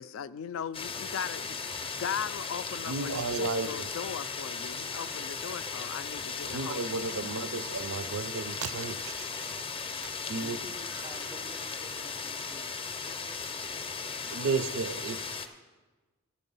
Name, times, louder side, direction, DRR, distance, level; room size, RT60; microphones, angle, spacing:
voice 1, 0.0-7.6, left 8 dB, 70° left, 16 dB, 0.3 m, -39 dB
sound 1, 0.7-15.5, left 5 dB, 25° left, 0.5 m, -37 dB
voice 2, 2.8-4.0 6.5-9.3 10.3-10.6 14.3-15.2, right 4 dB, 85° right, 13 dB, 0.5 m, -33 dB
voice 3, 10.4-12.7 13.0-14.1, equal, 20° right, 6 dB, 0.4 m, -51 dB
11.5 x 8.5 x 5.4 m, 1.3 s
head